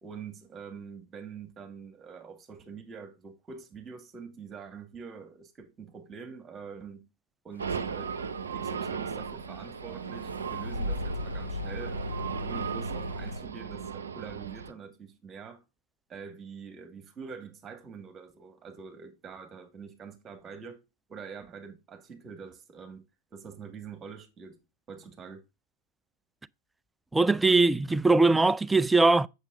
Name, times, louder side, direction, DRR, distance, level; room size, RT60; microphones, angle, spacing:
voice 1, 0.0-7.1 7.4-8.2 8.5-12.0 12.4-15.6 16.1-20.8 21.1-23.0 23.3-24.6 24.9-25.4, right 6 dB, 25° right, 2.4 m, -45 dB
sound 1, 7.5-13.4, left 1 dB, 80° left, 2.2 m, -38 dB
sound 2, 7.6-14.7, right 6 dB, 70° right, 0.7 m, -36 dB
voice 2, 27.1-29.3, right 3 dB, 10° right, 0.4 m, -21 dB
8.1 x 7.2 x 3.9 m
figure-of-eight pair, 90°, 0 cm